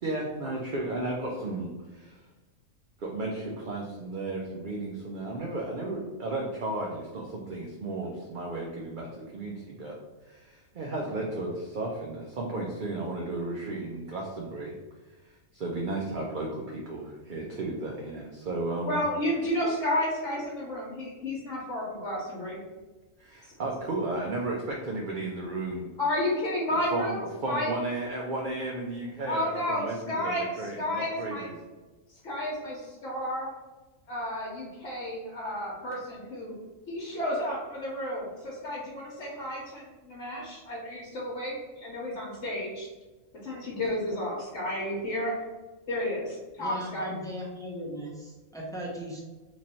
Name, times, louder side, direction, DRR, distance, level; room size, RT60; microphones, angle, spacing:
voice 1, 0.0-2.2 3.0-10.0 10.2-14.7 15.2-19.0 23.2-25.9 26.9-27.2 27.4-31.6, right 2 dB, 55° right, -1 dB, 0.6 m, -34 dB
voice 2, 18.8-22.6 26.0-27.2 27.5-27.7 29.2-30.5 30.8-31.5 32.1-33.5 34.1-36.5 36.9-42.9 43.4-45.5 45.9-47.1, left 1 dB, 65° left, -6 dB, 1.2 m, -31 dB
voice 3, 46.6-49.2, equal, 5° left, -4 dB, 0.5 m, -38 dB
3.0 x 2.6 x 4.2 m, 1.2 s
omnidirectional pair, 1.3 m